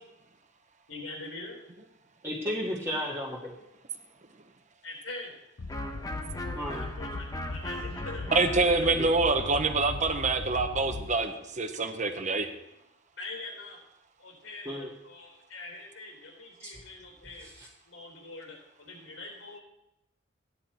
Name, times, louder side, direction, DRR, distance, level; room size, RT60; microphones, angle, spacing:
voice 1, 0.9-1.6 4.8-5.4 6.5-8.9 13.2-13.8 14.2-17.5 17.9-19.6, left 2 dB, 85° left, 1 dB, 4.0 m, -43 dB
voice 2, 2.2-3.5 6.5-6.8 9.0-9.1 14.7-14.9 16.6-16.7 17.4-17.7, equal, 15° right, -5 dB, 1.9 m, -34 dB
sound 1, 5.6-11.4, left 3 dB, 65° left, 0.6 m, -38 dB
Electric guitar, 5.7-11.3, equal, 20° left, 1.2 m, -41 dB
voice 3, 8.3-12.5, right 3 dB, 40° right, 6 dB, 1.2 m, -26 dB
15.0 x 10.0 x 4.5 m, 0.85 s
head